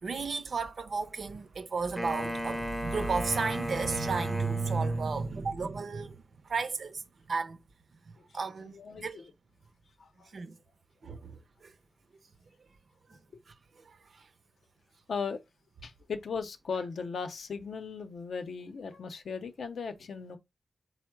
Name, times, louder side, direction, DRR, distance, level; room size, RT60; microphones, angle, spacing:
voice 1, 0.0-7.6 8.1-9.2 10.3-10.6 11.0-11.7 13.1-13.2 13.9-14.3, right 4 dB, 50° right, 0.5 m, -33 dB
Wind instrument woodwind instrument, 2.0-5.4, equal, 5° left, 0.5 m, -36 dB
voice 2, 8.7-9.3 10.0-10.3 15.1-15.4 15.8-20.4, left 5 dB, 70° left, 0.6 m, -37 dB
4.4 x 2.0 x 4.5 m
wide cardioid pair, 170°, 0 cm